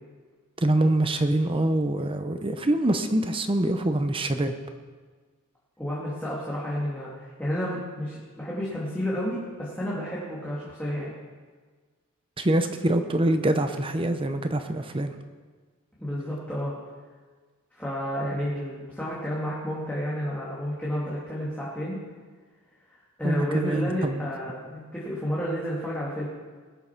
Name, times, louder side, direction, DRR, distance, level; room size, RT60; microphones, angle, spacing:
voice 1, 0.6-4.5 12.4-15.1 23.2-24.2, right 1 dB, 25° right, 7 dB, 0.7 m, -25 dB
voice 2, 5.8-11.1 16.0-16.7 17.7-22.0 23.2-26.3, equal, 5° left, -7 dB, 2.3 m, -31 dB
20.0 x 6.9 x 5.8 m, 1.5 s
head